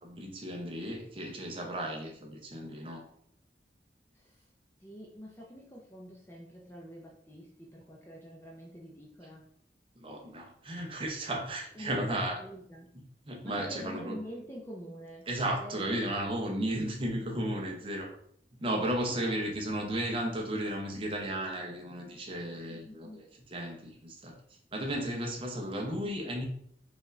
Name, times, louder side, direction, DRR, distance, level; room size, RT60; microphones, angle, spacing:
voice 1, 0.0-3.1 10.0-12.4 13.3-14.2 15.3-18.2 18.6-24.4 24.7-26.5, right 1 dB, 30° right, 0 dB, 0.7 m, -34 dB
voice 2, 4.8-9.4 11.7-12.9 13.4-15.3 15.6-15.8 19.0-19.4 22.7-23.3, equal, 15° left, -3 dB, 0.5 m, -46 dB
4.9 x 2.5 x 3.1 m, 0.67 s
head